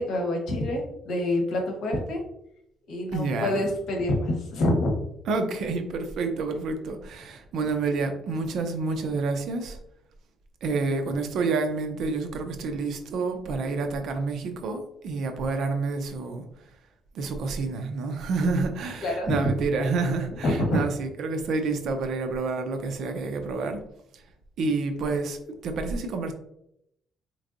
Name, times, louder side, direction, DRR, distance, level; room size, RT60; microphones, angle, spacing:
voice 1, 0.0-2.2 2.9-4.9 19.0-19.5 20.4-20.8, left 1 dB, 75° left, 1 dB, 1.1 m, -26 dB
voice 2, 3.1-3.7 5.3-9.8 10.6-16.4 17.1-23.8 24.1-24.2 24.6-26.3, right 3 dB, 65° right, 6 dB, 0.6 m, -28 dB
4.4 x 3.1 x 2.5 m, 0.77 s
cardioid pair, 155°, 0 cm